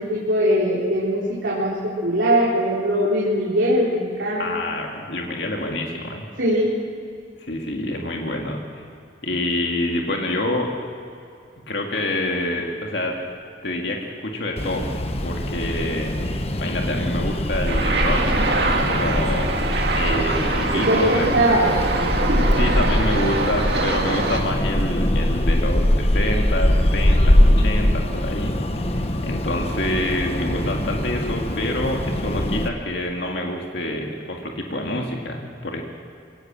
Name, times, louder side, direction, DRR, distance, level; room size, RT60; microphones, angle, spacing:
voice 1, 0.0-4.5 6.4-6.7 20.7-21.7 22.3-22.4 27.6-28.0, equal, 75° right, -6 dB, 3.9 m, -21 dB
voice 2, 4.4-6.3 7.4-8.9 9.2-10.7 11.7-13.2 13.6-14.9 15.2-18.2 18.6-19.6 20.0-21.4 22.5-35.8, left 1 dB, 65° left, 1 dB, 2.1 m, -27 dB
sound 1, 14.6-32.7, left 1 dB, 35° left, 1.2 m, -22 dB
sound 2, 17.7-24.4, right 2 dB, 55° right, 2.1 m, -24 dB
23.0 x 18.0 x 7.5 m, 2.5 s
head